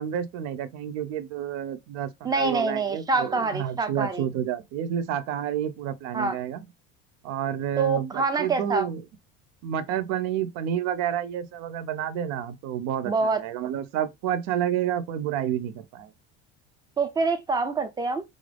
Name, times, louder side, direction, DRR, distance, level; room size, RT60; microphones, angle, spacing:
voice 1, 0.0-6.7 7.2-9.0 9.6-16.1, right 10 dB, 65° right, 0.8 m, -30 dB
voice 2, 2.2-4.3 6.1-6.4 7.8-8.9 13.0-13.4 17.0-18.2, right 4 dB, 15° right, 0.6 m, -26 dB
4.5 x 2.5 x 3.4 m
cardioid pair, 155°, 30 cm